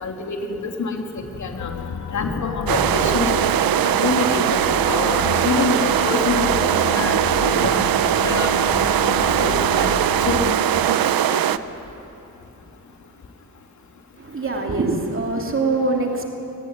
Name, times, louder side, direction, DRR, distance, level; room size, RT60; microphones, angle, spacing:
voice 1, 0.0-1.7 2.1-3.5 3.8-8.5 9.2-10.0 10.2-10.5 11.3-11.4, left 4 dB, 55° left, 2 dB, 2.8 m, -26 dB
sound 1, 1.6-10.5, left 8 dB, 85° left, 1.0 m, -31 dB
sound 2, 2.7-11.6, right 11 dB, 80° right, 0.8 m, -20 dB
voice 2, 14.2-16.3, right 3 dB, 35° right, 1 dB, 2.8 m, -23 dB
24.0 x 19.0 x 9.5 m, 3.0 s
cardioid pair, 110°, 35 cm